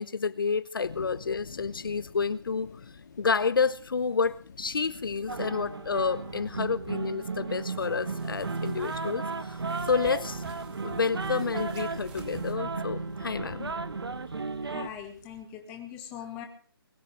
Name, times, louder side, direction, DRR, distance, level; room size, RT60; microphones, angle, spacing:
voice 1, 0.0-2.7 3.2-9.6 9.9-10.4 10.8-13.7, left 5 dB, 60° left, 17 dB, 0.9 m, -29 dB
sound 1, 0.8-15.4, left 5 dB, 45° left, 2.2 m, -49 dB
sound 2, 5.3-14.9, right 4 dB, 80° right, 1.6 m, -35 dB
sound 3, 7.8-12.5, right 7 dB, 5° right, 0.9 m, -53 dB
voice 2, 14.6-16.5, left 9 dB, 10° left, 4 dB, 1.8 m, -41 dB
21.5 x 10.0 x 6.0 m, 0.43 s
hypercardioid pair, 175°, 13 cm